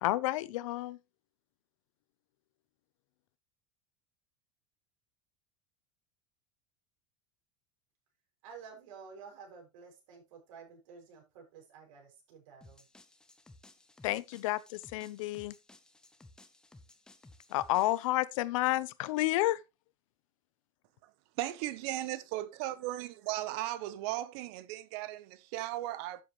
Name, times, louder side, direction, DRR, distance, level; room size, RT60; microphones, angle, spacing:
voice 1, 0.0-1.0 14.0-15.5 17.5-19.6, left 17 dB, 75° left, 0.8 m, -30 dB
voice 2, 8.4-12.9, right 6 dB, 75° right, 6.5 m, -52 dB
sound 1, 12.6-18.1, left 2 dB, 5° left, 0.7 m, -58 dB
voice 3, 21.4-26.2, right 15 dB, 50° right, 1.0 m, -37 dB
12.5 x 7.7 x 3.1 m
cardioid pair, 180°, 17 cm